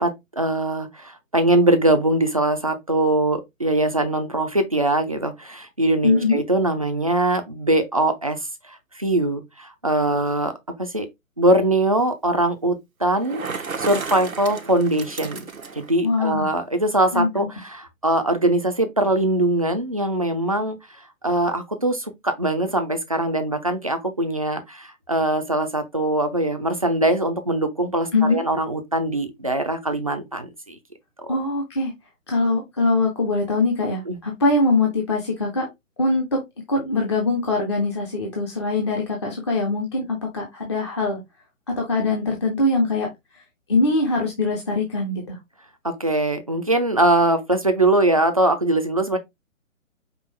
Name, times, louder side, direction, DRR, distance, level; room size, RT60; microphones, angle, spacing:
voice 1, 0.0-8.4 8.7-10.5 10.8-11.1 11.4-15.4 15.7-20.8 21.2-30.8 31.2-31.3 34.1-34.2 45.8-49.2, right 1 dB, 30° right, 0.4 m, -22 dB
voice 2, 6.0-6.4 16.0-16.5 17.1-17.5 28.1-28.4 31.3-31.9 32.3-35.7 36.0-36.4 36.7-41.2 41.7-43.1 43.7-45.4, left 3 dB, 20° left, 0.6 m, -22 dB
Bicycle, 13.1-15.9, right 5 dB, 85° right, 0.8 m, -33 dB
5.3 x 2.4 x 3.2 m
figure-of-eight pair, 135°, 41 cm